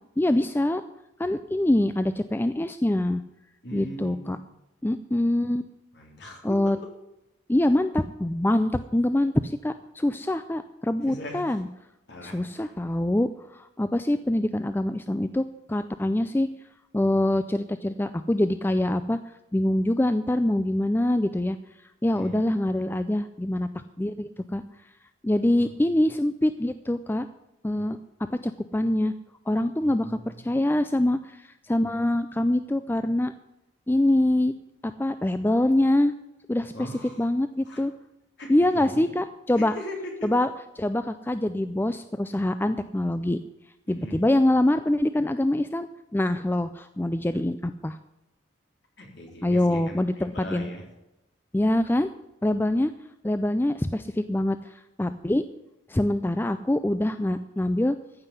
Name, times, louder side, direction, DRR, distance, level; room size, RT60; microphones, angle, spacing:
voice 1, 0.2-0.8 1.2-3.2 3.7-4.4 4.8-5.6 6.4-6.8 7.5-11.7 12.2-16.5 16.9-19.2 19.5-21.6 22.0-23.7 24.0-24.6 25.2-27.3 27.6-28.0 28.3-29.1 29.5-33.3 33.9-34.5 34.8-36.1 36.5-37.9 38.5-39.7 40.2-40.5 40.8-43.4 43.9-48.0 49.4-50.7 51.5-52.1 52.4-52.9 53.2-55.4 55.9-58.0, left 1 dB, 10° left, 11 dB, 0.3 m, -24 dB
voice 2, 3.6-4.4 5.9-6.9 11.1-11.4 12.1-12.7 22.1-22.4 29.8-30.1 36.7-37.2 37.7-37.8 38.4-39.1 39.6-40.3 43.9-44.2 49.0-50.8, equal, 55° left, 0 dB, 3.5 m, -39 dB
14.5 x 5.9 x 9.6 m, 0.91 s
head